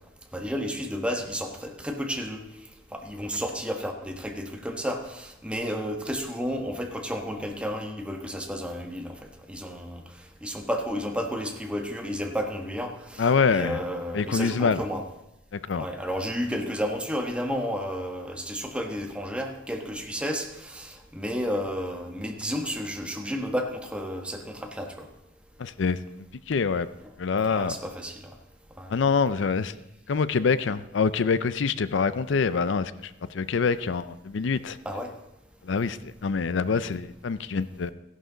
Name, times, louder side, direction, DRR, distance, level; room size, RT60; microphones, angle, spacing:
voice 1, 0.3-2.4 2.9-9.2 9.5-10.0 10.4-15.1 15.7-25.1 27.5-28.2 28.8-28.9 34.8-35.1, equal, 5° right, 1.2 m, -32 dB
voice 2, 13.2-13.8 14.1-14.8 15.7-15.9 25.6-26.0 26.5-26.9 27.2-27.8 28.9-29.7 30.1-34.8 35.7-37.9, left 5 dB, 70° left, 0.5 m, -25 dB
15.5 x 11.0 x 3.9 m
head